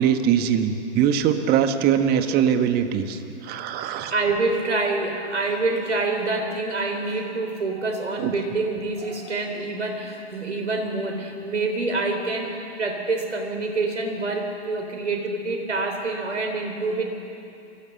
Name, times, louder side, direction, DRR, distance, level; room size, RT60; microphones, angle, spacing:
voice 1, 0.0-4.1 8.2-8.3, right 8 dB, 30° right, 8 dB, 1.3 m, -22 dB
voice 2, 3.8-17.0, right 3 dB, 85° right, 3 dB, 4.1 m, -26 dB
23.5 x 16.0 x 7.1 m, 2.7 s
hypercardioid pair, 115°, 34 cm